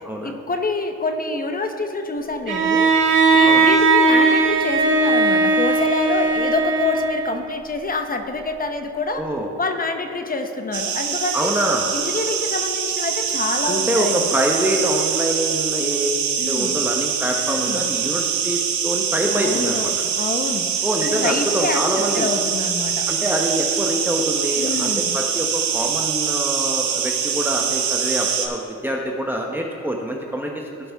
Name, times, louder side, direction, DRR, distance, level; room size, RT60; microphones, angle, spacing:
voice 1, 0.0-2.9 3.3-9.2 9.6-11.5 11.9-14.3 16.4-16.7 17.5-17.8 19.3-21.8 22.1-23.1 24.6-25.2, left 3 dB, 30° left, 6 dB, 0.9 m, -26 dB
Bowed string instrument, 2.5-7.5, right 3 dB, 40° right, 1.7 m, -17 dB
voice 2, 3.4-3.7 9.2-9.5 11.3-11.9 13.6-20.0 20.8-22.3 23.1-30.6, right 1 dB, 5° right, 0 dB, 0.9 m, -25 dB
sound 1, 10.7-28.5, right 7 dB, 70° right, 1.3 m, -24 dB
16.5 x 5.9 x 3.5 m, 2.6 s
cardioid pair, 90°, 30 cm